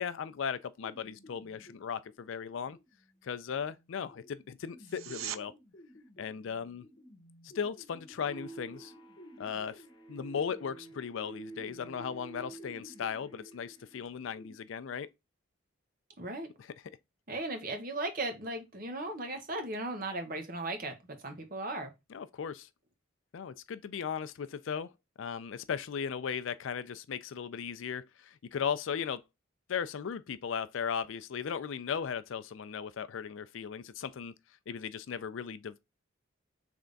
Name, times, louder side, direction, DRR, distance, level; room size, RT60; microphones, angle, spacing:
voice 1, 0.0-2.8 3.2-5.5 6.2-6.9 7.5-8.9 9.4-9.8 10.1-15.1 22.1-22.7 23.3-24.9 25.2-29.2 29.7-34.3 34.7-35.8, left 7 dB, 70° left, 0.4 m, -37 dB
sound 1, 0.8-14.5, left 1 dB, 40° left, 1.1 m, -57 dB
sound 2, 4.8-5.4 16.8-16.9, right 11 dB, 90° right, 0.4 m, -40 dB
sound 3, 8.3-14.0, right 3 dB, 20° left, 0.7 m, -50 dB
voice 2, 16.2-16.5 17.3-20.9 21.2-21.9, right 2 dB, 45° right, 0.9 m, -36 dB
3.5 x 3.3 x 3.9 m
head